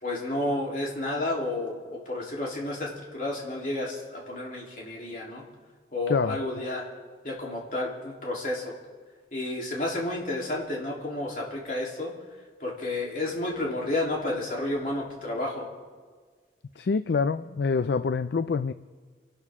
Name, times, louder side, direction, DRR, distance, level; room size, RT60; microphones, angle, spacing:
voice 1, 0.0-5.4 5.9-6.9 7.2-8.7 9.3-12.1 12.6-15.7, left 2 dB, 45° left, -3 dB, 3.4 m, -31 dB
voice 2, 16.8-18.7, left 5 dB, 65° left, 12 dB, 0.4 m, -26 dB
28.0 x 12.0 x 3.7 m, 1.5 s
head